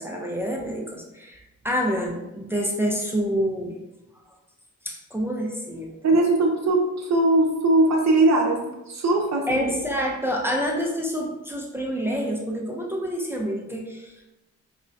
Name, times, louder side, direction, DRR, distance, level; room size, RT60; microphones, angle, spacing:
voice 1, 0.0-1.4 1.6-3.7 4.9-6.1 9.5-14.3, equal, 5° right, -1 dB, 0.4 m, -27 dB
voice 2, 6.0-8.6 8.9-9.6, right 2 dB, 55° right, 0 dB, 0.6 m, -20 dB
4.9 x 2.2 x 2.5 m, 0.98 s
wide cardioid pair, 125°, 33 cm